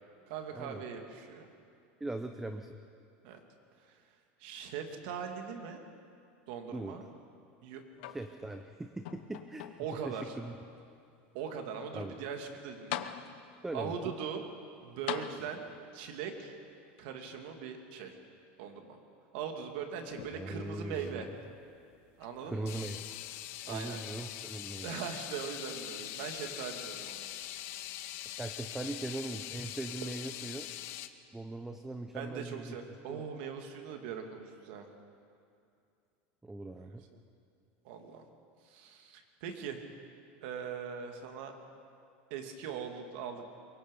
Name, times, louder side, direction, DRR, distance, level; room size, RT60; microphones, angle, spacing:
voice 1, 0.3-1.5 3.2-3.4 3.8-4.0 4.4-5.8 6.5-7.1 7.6-7.8 9.8-10.3 11.3-13.0 13.7-14.4 14.8-15.6 15.9-16.5 17.0-18.2 18.6-19.0 19.3-21.3 22.2-22.7 23.6-24.0 24.8-27.3 32.1-34.9 37.1-37.2 37.8-38.3 38.6-39.8 40.4-41.6 42.3-43.4, right 7 dB, 60° right, 4 dB, 2.6 m, -40 dB
voice 2, 2.0-2.7 6.7-7.0 8.1-9.7 10.0-10.6 11.9-12.1 13.6-13.9 20.3-21.3 22.4-23.0 23.7-25.0 28.4-30.7 31.3-32.8 33.1-33.3 36.4-37.0, right 2 dB, 5° right, 6 dB, 0.7 m, -40 dB
sound 1, 8.0-8.7 9.1-10.1 10.8-10.9 12.4-12.5 12.9-13.7 15.1-15.9 17.0-17.1, left 12 dB, 70° left, 1.0 m, -41 dB
sound 2, 20.1-20.4 20.9-21.1 22.2-22.3 22.7-31.1, left 13 dB, 45° left, 0.9 m, -43 dB
23.5 x 23.0 x 5.6 m, 2.5 s
supercardioid pair, 160°, 6 cm